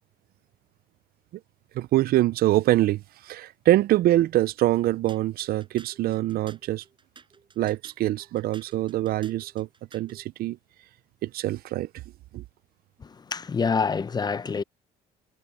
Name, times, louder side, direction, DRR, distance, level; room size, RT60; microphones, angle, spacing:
voice 1, 1.7-6.8 7.6-9.7 9.9-10.6 11.2-11.9 12.3-12.4, right 15 dB, 65° right, 0.5 m, -24 dB
sound 1, 5.1-10.2, right 5 dB, 30° right, 6.1 m, -53 dB
voice 2, 13.0-14.6, left 5 dB, 25° left, 0.6 m, -27 dB
cardioid pair, 110°, 17 cm